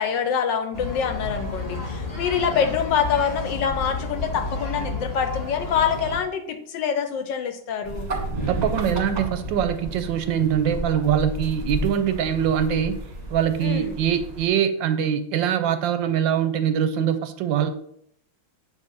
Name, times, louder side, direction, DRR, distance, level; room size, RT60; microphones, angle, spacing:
voice 1, 0.0-8.1 13.6-14.0, left 7 dB, 70° left, 7 dB, 1.3 m, -25 dB
sound 1, 0.7-6.2, left 3 dB, 20° left, 1.3 m, -31 dB
sound 2, 7.8-14.5, right 1 dB, 25° right, 1.1 m, -32 dB
voice 2, 8.5-13.0 13.3-17.7, right 9 dB, 75° right, 10 dB, 1.2 m, -23 dB
7.5 x 3.7 x 5.4 m, 0.69 s
omnidirectional pair, 2.2 m